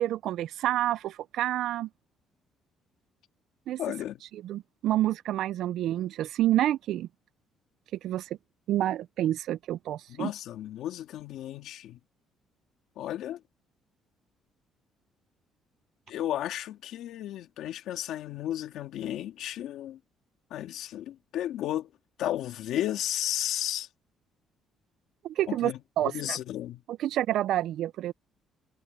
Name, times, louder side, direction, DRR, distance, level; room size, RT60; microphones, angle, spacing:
voice 1, 0.0-1.9 3.7-3.8 4.3-7.1 8.0-8.3 8.7-10.3 25.2-25.7 26.0-26.4 26.9-28.1, right 13 dB, 60° right, 0.3 m, -28 dB
voice 2, 3.8-4.2 10.1-12.0 13.0-13.4 16.1-20.0 20.5-21.9 22.2-23.9 25.5-25.8 26.0-26.8, left 12 dB, 65° left, 2.6 m, -33 dB
cardioid pair, 170°, 0 cm